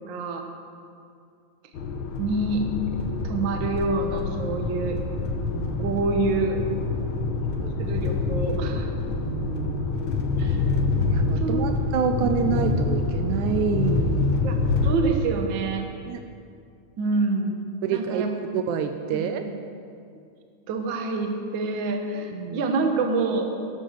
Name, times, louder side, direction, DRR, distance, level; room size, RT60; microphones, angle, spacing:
voice 1, 0.1-0.4 2.2-2.6 2.9-5.0 5.8-6.6 7.8-8.9 10.4-10.6 11.4-11.7 14.4-14.6 14.8-15.8 17.0-18.3 19.1-19.5 20.7-23.5, right 3 dB, 55° right, 4 dB, 1.4 m, -27 dB
sound 1, 1.7-15.0, left 3 dB, 60° left, 1.4 m, -26 dB
voice 2, 5.4-5.8 7.2-7.3 7.6-7.7 9.2-9.9 11.1-14.5 16.1-16.2 17.8-18.3 18.5-19.5 22.3-22.6, right 7 dB, 80° right, 7 dB, 1.9 m, -28 dB
12.0 x 12.0 x 6.7 m, 2.4 s
omnidirectional pair, 3.6 m